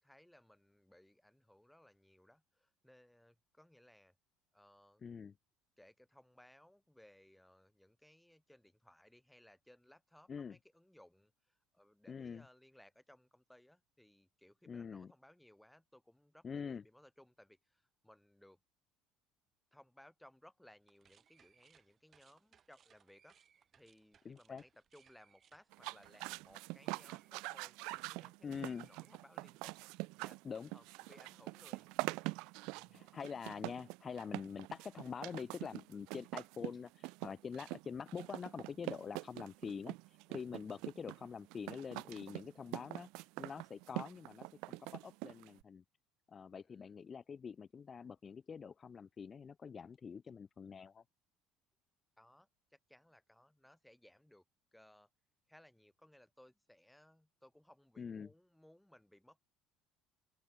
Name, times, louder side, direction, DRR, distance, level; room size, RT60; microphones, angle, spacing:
voice 1, 0.0-4.2 4.5-5.0 5.8-18.6 19.7-23.4 23.7-28.5 28.8-30.4 30.7-31.9 32.7-33.1 40.6-40.9 46.7-47.0 52.2-54.4 54.7-55.1 55.5-59.5, left 1 dB, 5° left, 7.0 m, -64 dB
voice 2, 5.0-5.3 10.3-10.6 12.1-12.4 14.7-15.1 16.4-16.8 24.2-24.6 28.4-28.9 30.4-30.7 32.9-45.8 46.3-51.0 58.0-58.3, left 6 dB, 35° left, 0.6 m, -45 dB
sound 1, 20.8-28.2 28.5-29.7, right 8 dB, 40° right, 4.9 m, -71 dB
sound 2, 25.7-45.6, right 26 dB, 75° right, 1.0 m, -45 dB
open air
supercardioid pair, 90°, 0 cm